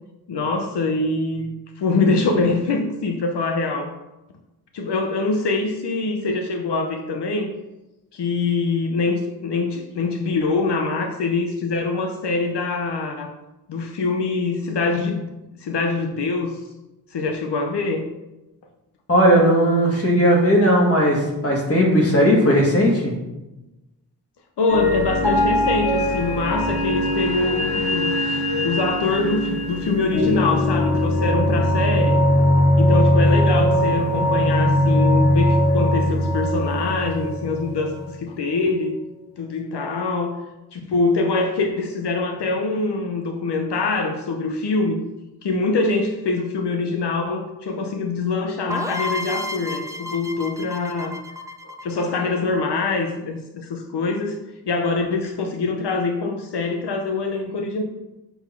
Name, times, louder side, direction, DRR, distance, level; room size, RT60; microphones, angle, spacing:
voice 1, 0.3-3.9 4.7-7.5 8.1-13.3 13.7-15.2 15.6-16.6 17.1-18.1 24.6-32.2 32.8-39.0 39.4-40.5 40.7-45.0 45.4-51.2 51.6-54.4 54.7-57.8, left 3 dB, 85° left, 4 dB, 0.8 m, -24 dB
voice 2, 19.1-23.1, equal, 35° left, -2 dB, 1.9 m, -17 dB
sound 1, 24.7-38.1, left 1 dB, 65° left, 2.2 m, -20 dB
sound 2, 48.7-52.4, left 1 dB, 10° right, 0.4 m, -31 dB
6.9 x 3.9 x 5.8 m, 1.0 s
wide cardioid pair, 135°, 40 cm